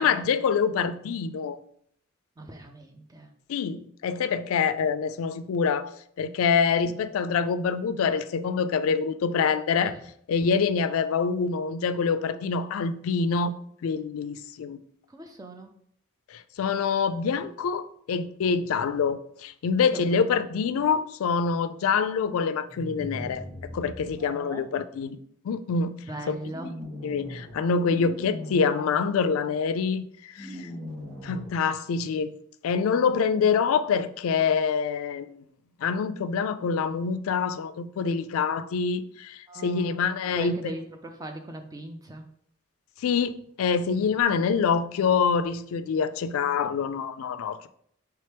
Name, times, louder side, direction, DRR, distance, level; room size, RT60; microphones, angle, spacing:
voice 1, 0.0-1.6 3.5-10.0 10.3-13.5 13.8-14.8 16.3-23.4 23.7-25.2 25.4-25.9 26.3-26.4 27.0-30.7 31.2-32.3 32.6-35.4 35.8-40.6 43.0-47.7, left 5 dB, 80° left, 0.3 m, -26 dB
voice 2, 2.4-3.3 6.9-7.0 9.8-10.0 15.1-15.7 19.9-20.5 24.1-24.7 26.1-26.7 39.5-42.2 44.0-44.1, right 1 dB, 15° right, 0.3 m, -40 dB
sound 1, 22.7-24.1 26.4-27.5 27.9-28.6 30.4-31.5, left 1 dB, ahead, 1.2 m, -39 dB
4.4 x 3.3 x 3.3 m
head